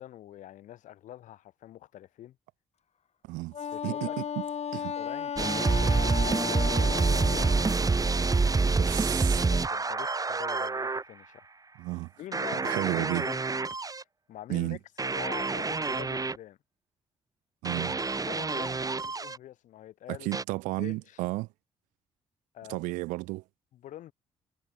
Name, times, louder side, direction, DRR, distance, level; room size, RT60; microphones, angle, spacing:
voice 1, 0.0-2.4 3.7-4.2 5.0-5.3 6.3-7.6 9.3-11.4 12.2-13.4 14.3-16.6 18.3-20.3 20.8-21.2 22.5-22.8 23.7-24.1, left 13 dB, 75° left, 6.5 m, -45 dB
voice 2, 3.2-3.5 3.8-4.2 4.7-4.9 8.8-9.5 11.8-12.1 12.6-13.2 14.5-14.8 17.6-18.0 20.1-21.5 22.7-23.4, right 22 dB, 90° right, 1.4 m, -32 dB
Wind instrument woodwind instrument, 3.5-7.8, left 8 dB, 55° left, 2.1 m, -35 dB
sound 1, 5.4-11.0 12.3-14.0 15.0-16.4 17.6-19.4 20.3-20.4, right 4 dB, 30° right, 1.5 m, -27 dB
supercardioid pair, 55°, 13 cm